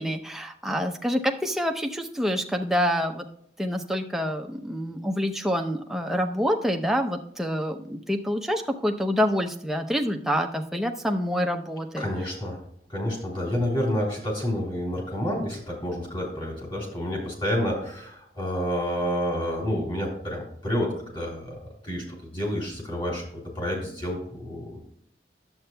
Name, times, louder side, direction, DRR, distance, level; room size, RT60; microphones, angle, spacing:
voice 1, 0.0-3.3 3.6-12.1, equal, ahead, 3 dB, 0.6 m, -27 dB
voice 2, 12.0-12.6 12.9-23.3 23.5-24.8, equal, 25° left, -1 dB, 3.2 m, -29 dB
11.0 x 7.8 x 2.2 m, 0.70 s
head